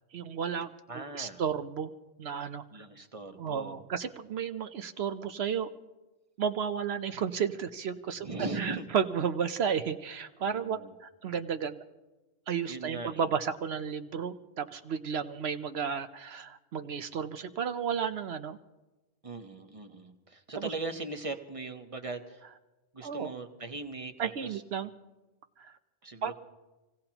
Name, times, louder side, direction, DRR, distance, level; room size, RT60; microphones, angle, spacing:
voice 1, 0.1-1.9 2.2-2.6 3.4-5.7 6.4-8.3 8.6-11.8 12.5-18.6 20.5-20.7 23.0-23.3 24.2-24.9 25.6-25.7 26.2-26.3, right 7 dB, 60° right, 9 dB, 0.9 m, -33 dB
voice 2, 0.9-1.4 2.7-3.9 8.2-8.9 10.5-10.9 12.7-13.3 19.2-22.4 22.9-24.6 26.0-26.3, right 3 dB, 30° right, 6 dB, 1.1 m, -39 dB
27.5 x 17.0 x 2.9 m, 1.1 s
omnidirectional pair, 1.3 m